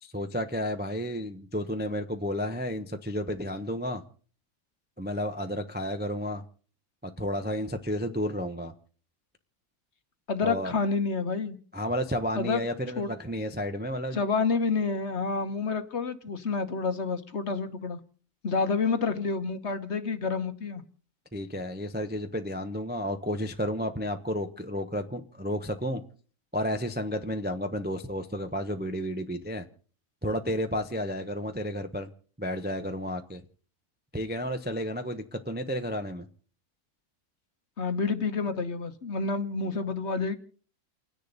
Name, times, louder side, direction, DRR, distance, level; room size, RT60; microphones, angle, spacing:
voice 1, 0.0-4.0 5.0-6.4 7.0-8.7 10.4-10.7 11.7-14.2 21.3-26.0 26.5-29.7 30.2-32.1 32.4-33.4 34.1-36.3, equal, 10° right, 0.6 m, -32 dB
voice 2, 10.3-11.6 12.3-12.6 13.0-13.1 14.1-18.0 18.4-20.8 37.8-40.4, left 4 dB, 50° left, 1.3 m, -29 dB
29.5 x 10.0 x 4.0 m
omnidirectional pair, 1.6 m